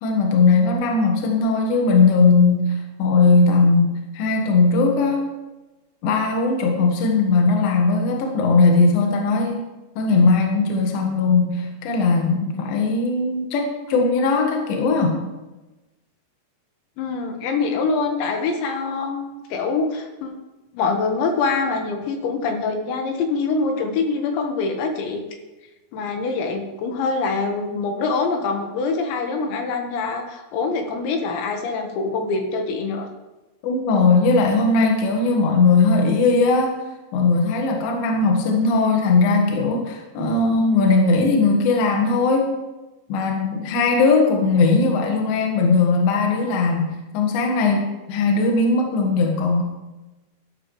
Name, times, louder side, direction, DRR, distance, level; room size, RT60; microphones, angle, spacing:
voice 1, 0.0-5.3 6.0-9.7 10.0-15.2 33.6-36.7 37.1-42.5 43.1-49.6, left 3 dB, 60° left, 1 dB, 3.0 m, -19 dB
voice 2, 17.0-20.3 20.7-25.2 25.9-33.1, left 4 dB, 85° left, 4 dB, 3.8 m, -24 dB
14.0 x 12.0 x 3.2 m, 1.1 s
omnidirectional pair, 5.1 m